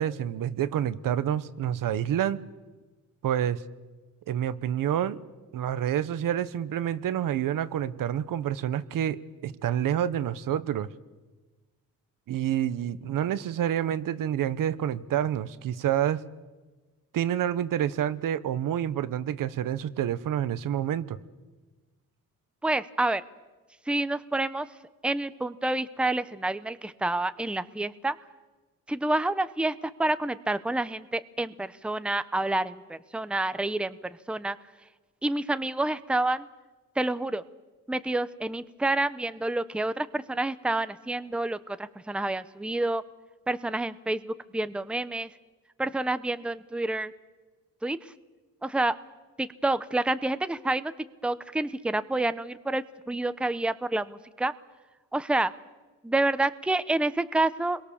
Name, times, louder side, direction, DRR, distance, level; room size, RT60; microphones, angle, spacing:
voice 1, 0.0-2.4 3.2-3.6 4.3-5.2 5.5-10.9 12.3-16.2 17.1-21.2, right 10 dB, 80° right, 14 dB, 1.2 m, -28 dB
voice 2, 22.6-23.2 23.9-24.7 25.0-28.2 28.9-34.6 35.2-36.5 37.0-37.4 37.9-43.0 43.5-45.3 45.8-47.1 47.8-48.0 48.6-48.9 49.4-50.9 51.2-54.5 55.1-55.5 56.0-57.8, right 2 dB, 5° right, 13 dB, 0.8 m, -28 dB
29.0 x 22.5 x 7.2 m, 1.2 s
cardioid pair, 130°, 32 cm